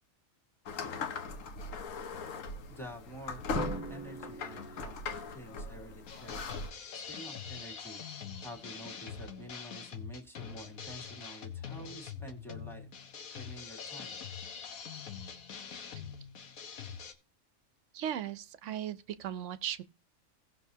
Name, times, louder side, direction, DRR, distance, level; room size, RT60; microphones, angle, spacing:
sound 1, 0.7-6.7, left 4 dB, 70° left, 1.2 m, -40 dB
voice 1, 2.7-3.4 3.9-6.6 6.9-12.9 13.3-14.2, equal, ahead, 1.6 m, -49 dB
Drum, 3.5-5.7, right 2 dB, 15° right, 0.5 m, -41 dB
sound 2, 6.0-17.1, left 7 dB, 85° left, 1.5 m, -44 dB
voice 2, 17.9-19.8, right 10 dB, 70° right, 0.9 m, -37 dB
17.5 x 6.0 x 2.7 m
omnidirectional pair, 1.4 m